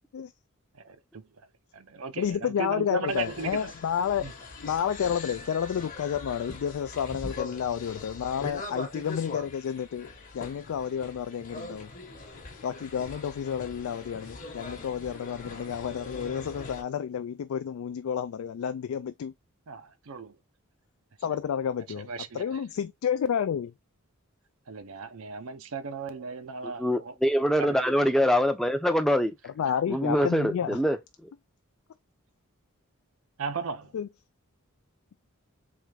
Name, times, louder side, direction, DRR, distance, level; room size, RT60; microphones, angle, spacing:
voice 1, 0.8-1.2 1.7-3.7 4.2-4.3 19.7-20.4 22.0-22.6 24.7-27.1 27.6-27.9 30.2-30.3 33.4-33.9, right 4 dB, 75° right, 0.6 m, -36 dB
voice 2, 2.2-4.3 4.6-10.1 10.3-11.9 12.6-19.3 21.2-22.1 22.3-23.7 29.6-30.8 33.9-34.1, left 8 dB, 80° left, 0.3 m, -30 dB
sound 1, 3.1-16.8, left 3 dB, 40° left, 1.0 m, -42 dB
voice 3, 26.6-29.3 29.9-31.0 31.2-31.3, equal, ahead, 0.5 m, -24 dB
3.6 x 3.1 x 3.2 m
head